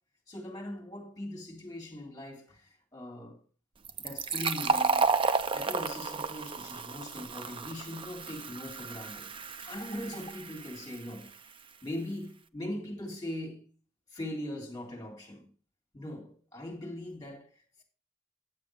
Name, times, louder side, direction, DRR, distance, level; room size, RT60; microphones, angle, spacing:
voice 1, 0.3-3.4 4.0-5.1 5.5-9.3 9.6-11.3 11.8-13.6 14.1-15.4 15.9-17.8, left 1 dB, 20° left, 3.7 m, -40 dB
Fill (with liquid), 3.8-11.2, right 4 dB, 25° right, 0.5 m, -32 dB
9.5 x 7.6 x 4.9 m
head